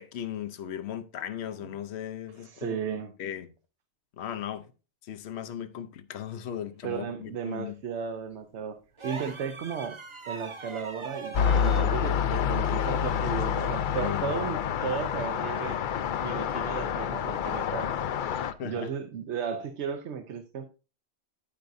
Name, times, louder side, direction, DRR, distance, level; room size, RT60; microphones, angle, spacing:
voice 1, 0.0-2.8 3.2-3.5 4.2-4.6 5.1-7.7 14.0-14.3 18.6-18.9, left 10 dB, 75° left, 0.9 m, -37 dB
voice 2, 2.3-3.1 6.8-10.0 10.3-17.9 18.6-20.7, right 7 dB, 90° right, 1.0 m, -35 dB
sound 1, 9.0-11.9 13.6-13.8, right 4 dB, 30° right, 0.7 m, -40 dB
sound 2, 11.3-18.5, left 8 dB, 60° left, 0.6 m, -28 dB
9.4 x 8.7 x 2.6 m
omnidirectional pair, 1.1 m